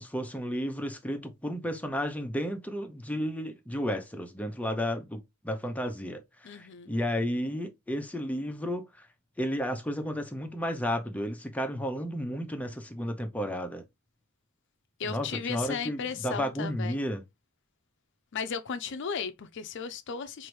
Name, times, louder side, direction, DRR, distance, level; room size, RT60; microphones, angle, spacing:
voice 1, 0.0-9.1 9.4-13.8 15.0-17.2, equal, 5° left, 0.6 m, -33 dB
voice 2, 6.4-6.9 15.0-17.0 18.3-20.5, left 6 dB, 55° left, 0.5 m, -35 dB
4.6 x 2.6 x 3.1 m
head